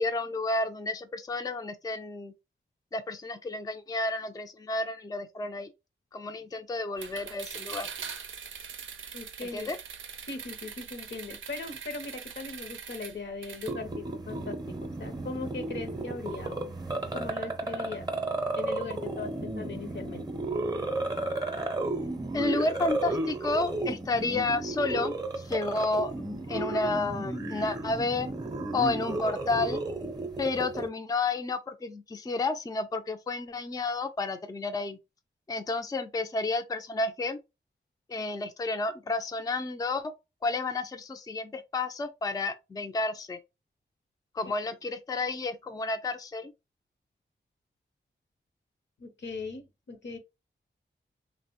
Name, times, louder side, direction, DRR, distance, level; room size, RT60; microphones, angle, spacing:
voice 1, 0.0-2.3 2.9-5.7 6.1-7.9 9.4-9.8 22.3-28.3 28.7-29.8 30.4-35.0 35.5-37.4 38.1-40.1 40.4-43.4 44.3-46.5, left 3 dB, 20° left, 0.4 m, -31 dB
sound 1, 7.0-13.7, right 6 dB, 75° right, 0.4 m, -42 dB
voice 2, 9.1-9.7 10.3-16.8 17.1-18.1 18.6-20.3 49.0-50.2, left 3 dB, 65° left, 0.7 m, -39 dB
sound 2, 13.7-30.9, right 2 dB, 20° right, 0.6 m, -33 dB
2.9 x 2.1 x 2.8 m
cardioid pair, 50°, 20 cm